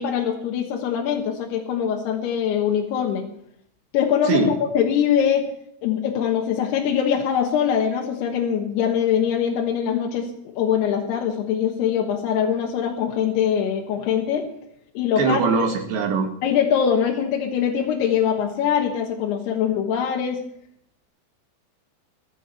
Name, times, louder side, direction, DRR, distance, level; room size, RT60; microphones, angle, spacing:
voice 1, 0.0-3.2 3.9-4.4 4.7-5.5 5.8-10.3 10.5-14.5 14.9-15.7 16.4-20.4, left 8 dB, 70° left, 1 dB, 3.0 m, -22 dB
voice 2, 15.2-16.3, right 4 dB, 65° right, 2 dB, 3.9 m, -21 dB
23.5 x 7.9 x 4.5 m, 0.70 s
omnidirectional pair, 5.6 m